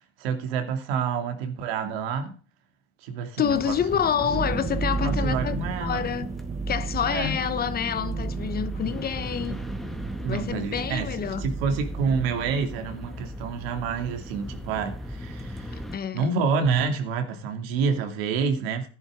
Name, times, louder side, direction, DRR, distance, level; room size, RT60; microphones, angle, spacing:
voice 1, 0.2-2.4 3.0-4.3 5.0-6.1 7.1-7.4 10.2-15.8 16.1-18.9, right 5 dB, 90° right, 2.6 m, -28 dB
voice 2, 3.4-6.3 6.7-9.6 10.3-11.5 15.9-16.3, left 8 dB, 30° left, 1.1 m, -28 dB
sound 1, 3.4-16.0, left 1 dB, ahead, 1.9 m, -38 dB
sound 2, 4.3-12.9, right 4 dB, 25° right, 1.1 m, -33 dB
14.0 x 11.0 x 3.7 m
supercardioid pair, 120°, 29 cm